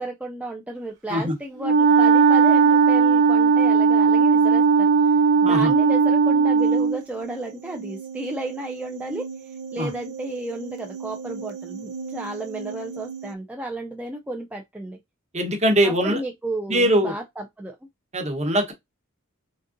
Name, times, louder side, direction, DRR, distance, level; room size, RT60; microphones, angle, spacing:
voice 1, 0.0-15.0 15.8-17.8, right 2 dB, 5° right, 0.4 m, -33 dB
Wind instrument woodwind instrument, 1.6-7.0, right 5 dB, 60° right, 1.0 m, -17 dB
sound 1, 6.6-13.3, right 5 dB, 80° right, 0.5 m, -37 dB
voice 2, 15.3-16.2 16.7-17.1 18.1-18.7, equal, 30° right, 1.1 m, -21 dB
3.9 x 3.6 x 2.6 m
head